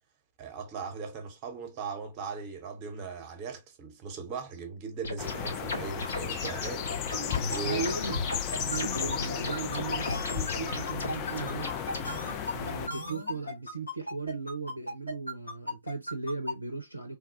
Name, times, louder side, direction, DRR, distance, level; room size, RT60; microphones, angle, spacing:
voice 1, 0.4-7.1 7.4-7.8, right 5 dB, 30° right, 1.0 m, -39 dB
sound 1, 5.0-12.1, left 2 dB, 65° left, 1.2 m, -37 dB
sound 2, 5.2-12.9, left 9 dB, 30° left, 0.5 m, -34 dB
sound 3, 6.9-16.5, left 2 dB, 80° left, 1.7 m, -36 dB
voice 2, 7.6-8.2 8.7-11.7 12.5-17.2, right 4 dB, 85° right, 0.5 m, -36 dB
3.5 x 2.3 x 2.9 m
figure-of-eight pair, 110°, 0 cm